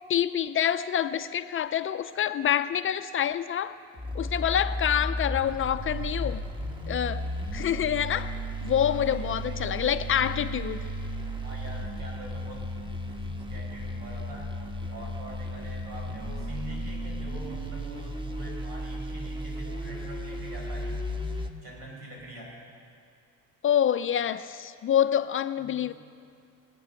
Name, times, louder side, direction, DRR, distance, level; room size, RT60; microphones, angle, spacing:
voice 1, 0.1-3.8 4.1-6.4 6.9-7.2 7.5-10.9 23.6-25.9, left 9 dB, 35° left, 12 dB, 0.4 m, -27 dB
sound 1, 3.9-21.5, equal, 15° right, 1.1 m, -34 dB
voice 2, 8.8-9.7 10.0-10.7 11.4-12.7 13.0-14.5 14.8-21.0 21.6-22.5 25.6-25.9, right 1 dB, 85° right, -2 dB, 5.1 m, -45 dB
20.0 x 9.2 x 6.4 m, 2.3 s
cardioid pair, 115°, 35 cm